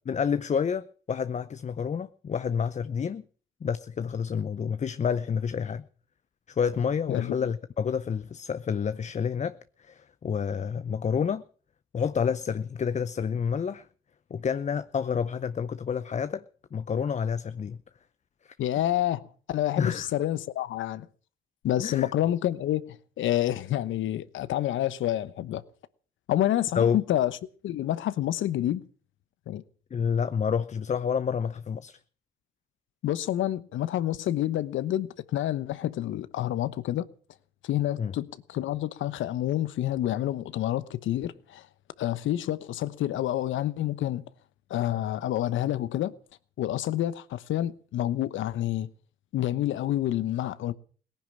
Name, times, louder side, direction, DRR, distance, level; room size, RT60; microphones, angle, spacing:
voice 1, 0.1-3.2 3.6-5.8 6.5-11.4 11.9-13.9 14.3-16.4 16.7-17.8 19.8-20.1 21.8-22.1 26.7-27.0 29.9-32.0 38.0-38.1, left 7 dB, 35° left, 0.7 m, -29 dB
voice 2, 7.1-7.5 18.6-21.1 21.6-25.6 26.3-27.4 27.6-28.9 29.5-29.6 33.0-37.1 37.6-41.7 42.0-44.2 44.7-46.1 46.6-48.9 49.3-50.7, left 13 dB, 75° left, 1.1 m, -28 dB
18.0 x 10.5 x 7.3 m
cardioid pair, 90°, 20 cm